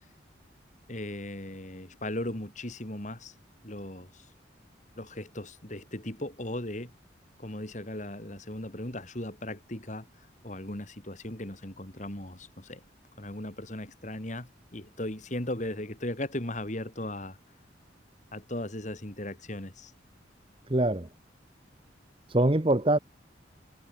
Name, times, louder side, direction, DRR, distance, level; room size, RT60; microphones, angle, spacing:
voice 1, 0.9-3.3 3.6-4.2 5.0-6.9 7.4-10.1 10.4-12.8 13.2-17.4 18.3-19.9, left 1 dB, 40° left, 3.2 m, -37 dB
voice 2, 20.7-21.1 22.3-23.0, right 1 dB, 30° right, 1.1 m, -23 dB
head